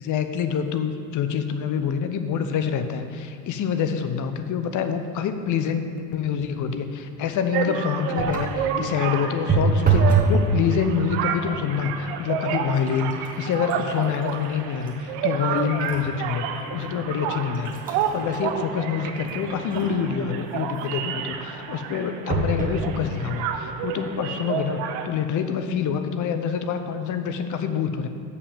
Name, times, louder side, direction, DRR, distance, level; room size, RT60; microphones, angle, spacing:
voice 1, 0.0-28.1, left 7 dB, 40° left, 8 dB, 0.7 m, -26 dB
sound 1, 7.5-25.1, right 7 dB, 60° right, 0.8 m, -30 dB
sound 2, 8.1-8.6 9.5-10.4 10.7-11.2 12.0-12.1 12.5-16.1 16.6-16.7 17.3-20.1 22.3-22.8 23.5-23.6 23.8-23.9, right 4 dB, 15° right, 1.3 m, -26 dB
6.8 x 5.4 x 7.2 m, 2.3 s
hypercardioid pair, 90°, 49 cm